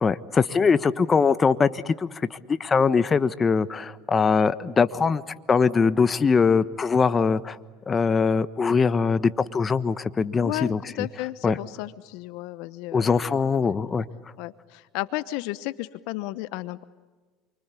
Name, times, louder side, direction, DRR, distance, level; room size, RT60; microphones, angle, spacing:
voice 1, 0.0-5.2 5.5-7.6 7.9-11.1 11.4-11.6 12.9-14.1, left 5 dB, 30° left, 13 dB, 1.2 m, -22 dB
voice 2, 10.4-13.7 14.4-16.8, left 18 dB, 70° left, 15 dB, 0.9 m, -33 dB
29.0 x 25.0 x 8.4 m, 1.4 s
hypercardioid pair, 85°, 0 cm